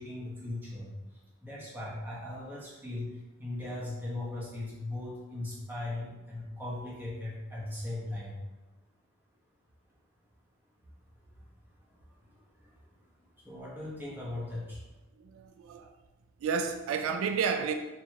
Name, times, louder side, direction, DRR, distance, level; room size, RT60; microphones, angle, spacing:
voice 1, 0.0-8.4 11.4-11.5 11.9-12.0 12.3-12.8 13.4-14.8, left 2 dB, 10° right, 1.0 m, -39 dB
voice 2, 15.2-15.9 16.4-17.7, right 6 dB, 85° right, 0.3 m, -31 dB
4.4 x 2.9 x 2.9 m
head